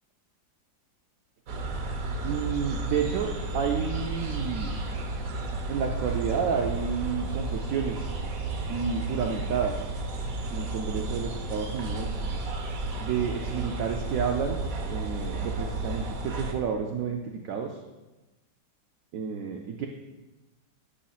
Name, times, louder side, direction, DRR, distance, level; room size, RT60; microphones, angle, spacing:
sound 1, 1.5-16.5, right 2 dB, 60° right, 1.0 m, -32 dB
voice 1, 2.2-4.8 5.7-8.0 8.7-9.9 10.5-12.2 13.0-17.8 19.1-19.9, right 6 dB, 90° right, 2 dB, 0.7 m, -30 dB
10.0 x 5.6 x 2.4 m, 1.1 s
omnidirectional pair, 2.1 m